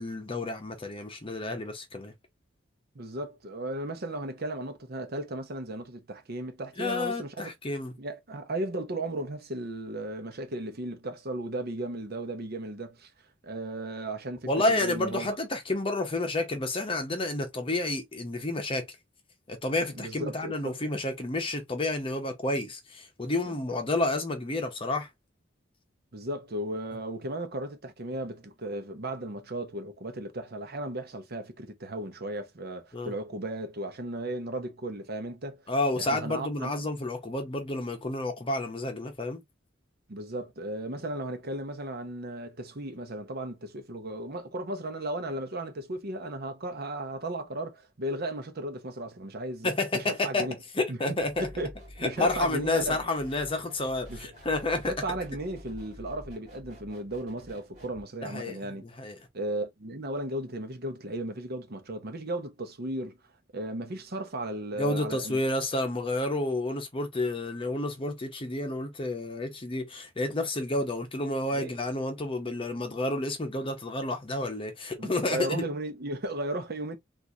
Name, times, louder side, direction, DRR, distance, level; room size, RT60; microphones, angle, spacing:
voice 1, 0.0-2.1 6.8-7.9 14.5-18.9 19.5-25.1 32.9-33.1 35.7-39.4 49.6-50.5 50.7-51.5 52.0-54.9 58.2-59.2 64.8-75.7, left 2 dB, 30° left, 0.7 m, -30 dB
voice 2, 2.9-7.5 8.0-13.1 13.4-15.4 20.0-20.8 23.5-23.6 26.1-35.6 36.0-36.7 40.1-50.5 50.9-51.0 51.4-51.7 52.0-53.0 54.1-54.3 54.9-58.8 59.3-63.1 63.5-65.4 71.5-71.7 75.0-77.0, right 1 dB, 55° right, 0.8 m, -35 dB
sound 1, 51.2-58.0, equal, 40° right, 2.0 m, -48 dB
3.8 x 2.5 x 2.7 m
head